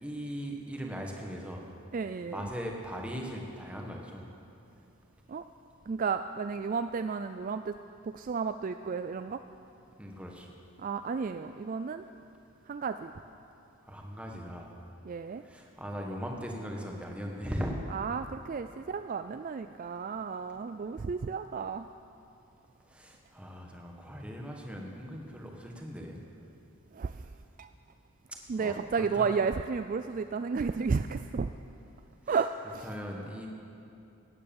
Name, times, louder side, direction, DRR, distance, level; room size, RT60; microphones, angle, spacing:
voice 1, 0.0-1.6 2.3-4.2 10.0-10.5 13.8-14.7 15.4-17.9 22.8-26.2 28.3-29.3 32.2-32.4 32.8-33.5, equal, 5° right, 0 dB, 1.5 m, -39 dB
voice 2, 1.9-2.4 5.3-5.4 5.9-7.7 8.0-9.4 10.8-12.1 12.7-13.1 15.1-15.4 17.9-21.9 26.9-27.2 27.6-27.7 28.5-31.5 32.3-32.9, right 5 dB, 40° right, 9 dB, 0.3 m, -32 dB
17.5 x 9.8 x 7.2 m, 2.8 s
head